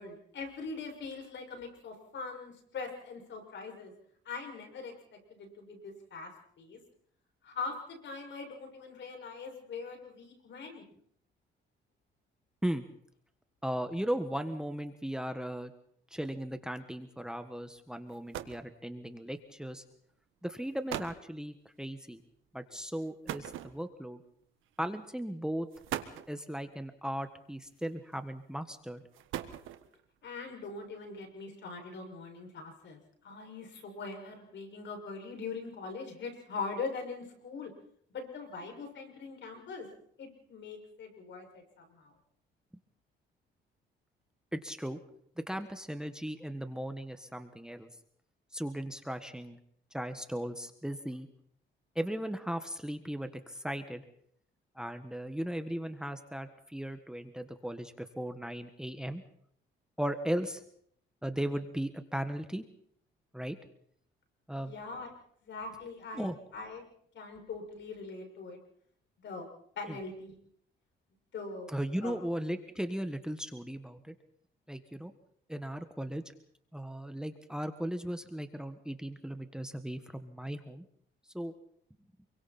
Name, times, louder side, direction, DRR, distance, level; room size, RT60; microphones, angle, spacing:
voice 1, 0.0-3.9 4.2-6.3 6.6-6.8 7.4-10.8 30.2-37.7 38.1-39.9 40.2-42.1 64.6-65.1 65.4-66.3 66.5-66.8 67.1-68.6 69.2-69.5 69.8-70.4 71.3-72.2, left 4 dB, 65° left, 4 dB, 6.4 m, -42 dB
voice 2, 13.6-15.7 16.1-19.8 20.4-22.2 22.5-24.2 24.8-25.7 26.3-29.0 44.5-45.0 45.4-47.9 48.5-49.6 49.9-51.3 51.9-54.0 54.7-59.2 60.0-60.6 61.2-62.6 63.3-63.6 64.5-64.7 66.1-66.3 69.9-70.0 71.7-74.1 74.7-75.1 75.5-76.2 76.7-80.8 81.3-81.5, right 1 dB, 5° right, 9 dB, 1.6 m, -37 dB
sound 1, 17.8-17.9 18.1-18.7 19.7-19.9 20.6-20.7 20.9-21.3 23.3-24.1 25.1-25.2 25.7-26.4 27.6-28.1 29.0-30.0, right 12 dB, 85° right, 1.5 m, -40 dB
28.0 x 23.0 x 4.4 m, 0.66 s
cardioid pair, 90°, 20 cm